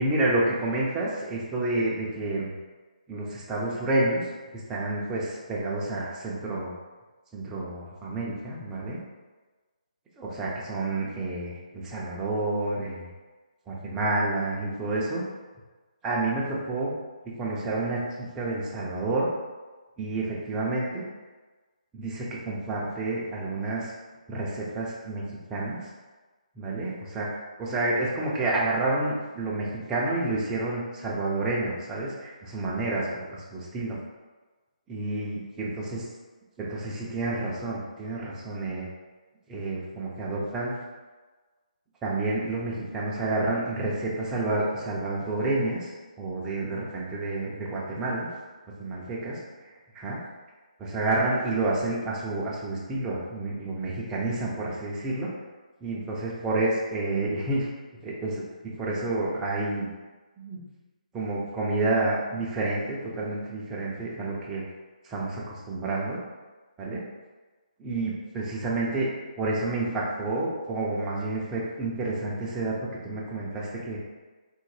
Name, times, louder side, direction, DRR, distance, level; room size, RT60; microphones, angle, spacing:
voice 1, 0.0-2.5 3.1-4.2 4.5-6.7 7.3-9.0 10.2-13.1 13.7-15.2 16.0-16.9 17.2-19.3 20.0-21.0 21.9-23.9 24.3-25.9 26.6-27.3 27.6-34.0 34.9-36.0 36.6-38.9 39.5-40.8 42.0-45.9 46.2-48.3 48.8-50.2 50.8-55.3 55.8-57.7 58.0-58.4 58.8-59.9 60.4-60.6 61.1-64.6 65.0-66.2 66.8-67.0 67.8-69.1 69.4-74.0, right 2 dB, 10° right, -5 dB, 0.4 m, -29 dB
3.6 x 2.1 x 3.2 m, 1.3 s
hypercardioid pair, 160°, 5 cm